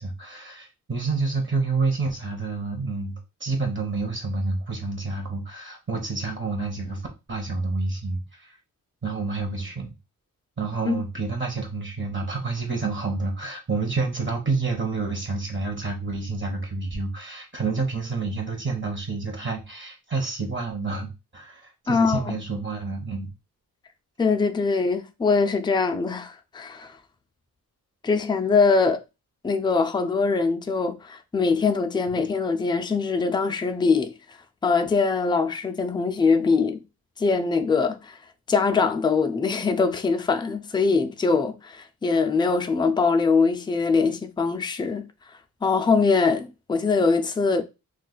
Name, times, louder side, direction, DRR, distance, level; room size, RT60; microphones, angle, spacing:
voice 1, 0.0-7.0 7.3-8.6 9.0-9.9 10.6-23.3, right 3 dB, 35° right, 0.8 m, -29 dB
voice 2, 21.9-22.4 24.2-27.0 28.0-29.0 29.4-34.1 34.6-36.8 37.2-38.2 38.5-45.0 45.6-47.6, left 4 dB, 15° left, 0.3 m, -22 dB
2.4 x 2.3 x 3.8 m
cardioid pair, 90°, 35 cm